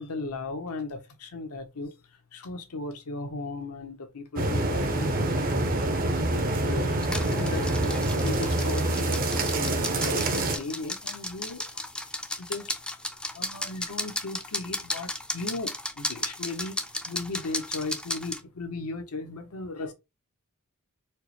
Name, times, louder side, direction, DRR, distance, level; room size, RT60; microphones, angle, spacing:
voice 1, 0.0-1.9 2.3-5.5 6.3-11.6 12.4-12.8 13.3-19.9, left 3 dB, 90° left, 0.9 m, -37 dB
sound 1, 4.4-10.6, right 1 dB, 40° right, 0.6 m, -26 dB
sound 2, 7.0-18.4, left 1 dB, 5° left, 0.4 m, -35 dB
4.4 x 2.1 x 3.0 m
head